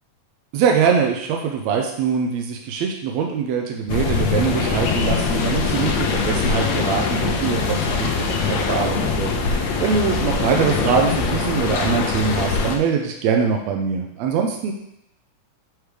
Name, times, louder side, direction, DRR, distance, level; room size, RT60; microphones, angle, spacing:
voice 1, 0.5-14.7, right 6 dB, 80° right, 2 dB, 1.6 m, -23 dB
sound 1, 3.9-12.8, left 5 dB, 75° left, 1.7 m, -22 dB
8.0 x 3.3 x 4.9 m, 0.78 s
omnidirectional pair, 3.8 m